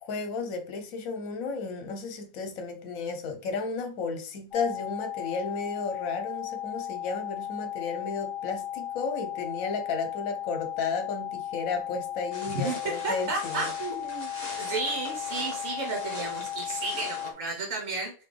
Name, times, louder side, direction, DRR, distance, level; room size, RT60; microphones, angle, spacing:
voice 1, 0.0-13.7, left 4 dB, 75° left, 1.1 m, -33 dB
sound 1, 4.5-17.3, left 11 dB, 15° left, 1.8 m, -36 dB
sound 2, 12.3-17.3, left 2 dB, 45° left, 1.2 m, -41 dB
voice 2, 13.0-14.3 14.6-18.1, right 3 dB, 65° right, 1.2 m, -33 dB
4.0 x 2.8 x 3.3 m
omnidirectional pair, 1.5 m